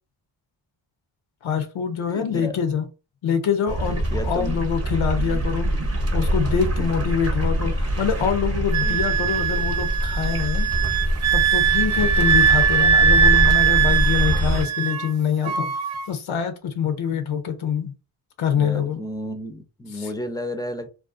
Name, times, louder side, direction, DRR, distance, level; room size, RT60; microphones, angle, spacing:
voice 1, 1.4-2.9 3.2-10.7 11.3-15.7 16.1-17.9 18.4-19.0 19.9-20.1, left 7 dB, 80° left, 0.6 m, -25 dB
voice 2, 2.1-2.6 3.9-4.6 5.1-5.5 6.8-6.9 8.8-9.0 18.6-20.9, left 1 dB, 10° left, 0.4 m, -33 dB
sound 1, 3.7-14.6, right 1 dB, 30° right, 0.7 m, -24 dB
Wind instrument woodwind instrument, 8.7-15.1 15.4-16.1, right 7 dB, 80° right, 0.6 m, -21 dB
2.4 x 2.3 x 2.4 m
cardioid pair, 45°, 48 cm